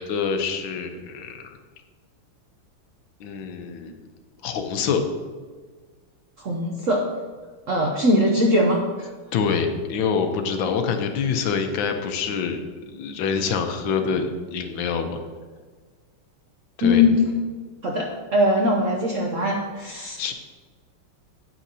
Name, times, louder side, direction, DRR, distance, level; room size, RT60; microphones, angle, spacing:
voice 1, 0.0-1.4 3.2-4.0 4.4-5.0 9.3-12.6 12.9-15.2 16.8-17.0 20.2-20.3, left 6 dB, 70° left, 6 dB, 1.4 m, -26 dB
voice 2, 6.4-7.0 7.7-9.1 16.8-17.3 17.8-20.2, left 1 dB, 70° right, 0 dB, 0.7 m, -21 dB
8.8 x 8.3 x 2.8 m, 1.4 s
omnidirectional pair, 2.3 m